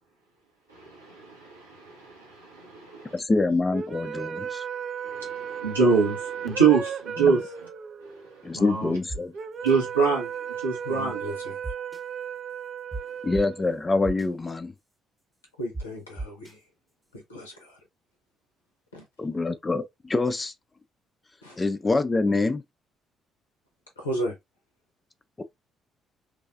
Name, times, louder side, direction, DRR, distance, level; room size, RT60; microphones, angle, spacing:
voice 1, 0.7-3.1 5.0-7.4 8.5-8.9 9.6-10.3 10.6-11.2, right 5 dB, 90° right, 0.9 m, -25 dB
voice 2, 3.1-4.6 7.2-7.4 8.4-9.3 13.2-14.7 19.2-20.5 21.6-22.6 25.4-25.5, left 3 dB, 25° left, 0.4 m, -25 dB
sound 1, 3.7-14.1, right 8 dB, 45° right, 0.5 m, -36 dB
sound 2, 9.1-9.2 9.7-9.8 11.6-12.0 12.9-13.0 13.3-13.4 14.0-14.3 15.7-15.8 16.2-16.5, right 2 dB, 10° right, 0.9 m, -34 dB
voice 3, 10.8-11.6 15.6-16.6 17.1-17.8 18.9-19.1 21.4-21.6 24.0-24.4, right 1 dB, 85° left, 0.6 m, -34 dB
3.2 x 2.4 x 2.4 m
figure-of-eight pair, 45°, 0 cm